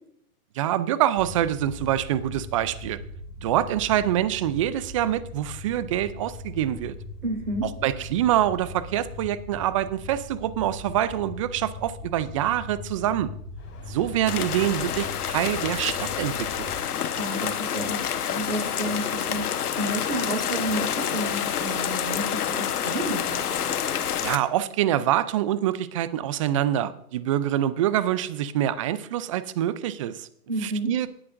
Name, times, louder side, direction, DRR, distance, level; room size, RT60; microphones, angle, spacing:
voice 1, 0.6-3.0 3.4-7.0 7.6-13.3 13.9-16.7 24.2-30.3 30.6-31.1, right 12 dB, 25° right, 16 dB, 0.4 m, -25 dB
sound 1, 1.2-16.8, left 2 dB, 10° left, 2.8 m, -40 dB
voice 2, 7.2-7.7 17.1-23.4 30.5-30.9, right 1 dB, 80° right, 1 dB, 4.3 m, -31 dB
sound 2, 13.6-24.2, left 3 dB, 25° left, 4.6 m, -50 dB
sound 3, 14.2-24.4, left 9 dB, 75° left, 1.3 m, -28 dB
18.5 x 9.8 x 2.6 m, 0.71 s
hypercardioid pair, 125°, 46 cm